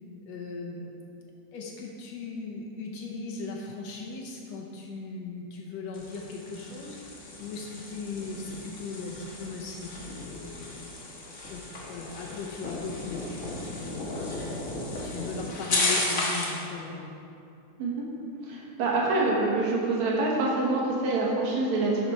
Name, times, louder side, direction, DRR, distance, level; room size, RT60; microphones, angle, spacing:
voice 1, 0.3-1.0 1.5-10.9 11.5-14.4 15.0-17.1, left 4 dB, 75° left, -1 dB, 1.8 m, -38 dB
sound 1, 5.9-16.6, left 2 dB, 55° left, 0.9 m, -34 dB
voice 2, 18.4-22.1, right 2 dB, 70° right, -3 dB, 2.6 m, -26 dB
11.0 x 5.9 x 4.5 m, 2.7 s
omnidirectional pair, 3.4 m